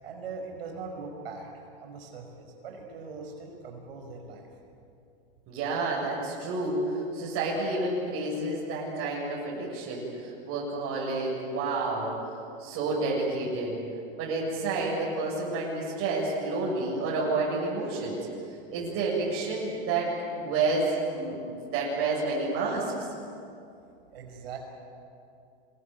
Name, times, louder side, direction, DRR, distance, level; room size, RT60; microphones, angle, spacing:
voice 1, 0.0-4.5 18.6-18.7 24.1-24.6, right 4 dB, 85° right, 2 dB, 5.7 m, -41 dB
voice 2, 5.5-12.1 12.6-13.8 14.2-18.2 18.7-22.9, right 3 dB, 50° right, -5 dB, 7.7 m, -29 dB
27.0 x 21.5 x 9.5 m, 2.6 s
supercardioid pair, 115°, 29 cm